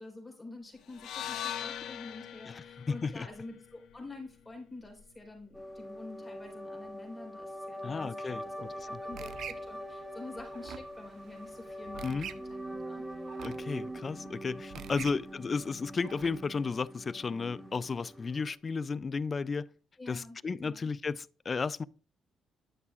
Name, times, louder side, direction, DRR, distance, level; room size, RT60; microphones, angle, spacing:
voice 1, 0.0-8.5 8.9-13.0 14.9-15.2 20.0-20.9, left 2 dB, 15° left, 4.4 m, -47 dB
sound 1, 0.9-5.1, left 10 dB, 75° left, 0.8 m, -42 dB
voice 2, 2.5-3.3 7.8-8.9 12.0-12.3 13.4-19.7 20.1-21.8, left 4 dB, 35° left, 0.3 m, -34 dB
sound 2, 5.5-18.5, equal, 5° right, 0.9 m, -43 dB
sound 3, 8.3-16.4, right 8 dB, 75° right, 0.6 m, -48 dB
11.0 x 6.7 x 2.4 m
cardioid pair, 90°, 0 cm